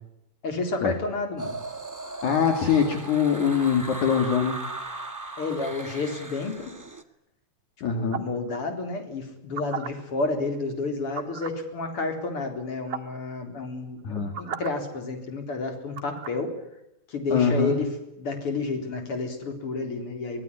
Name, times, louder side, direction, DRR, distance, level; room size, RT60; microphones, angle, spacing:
voice 1, 0.4-1.6 5.4-6.7 7.9-16.5 17.1-20.4, left 3 dB, 40° left, 5 dB, 4.6 m, -30 dB
sound 1, 1.4-7.0, right 2 dB, 10° right, 0.8 m, -37 dB
voice 2, 2.2-4.6 7.8-8.2 14.0-14.3 17.3-17.7, left 7 dB, 60° left, 5 dB, 3.7 m, -23 dB
sound 2, 8.1-8.4 9.4-9.9 11.1-11.6 12.6-12.7 12.9-13.2 14.0-14.7 16.0-16.4, right 7 dB, 40° right, 1.8 m, -35 dB
24.5 x 19.5 x 10.0 m, 0.88 s
omnidirectional pair, 4.0 m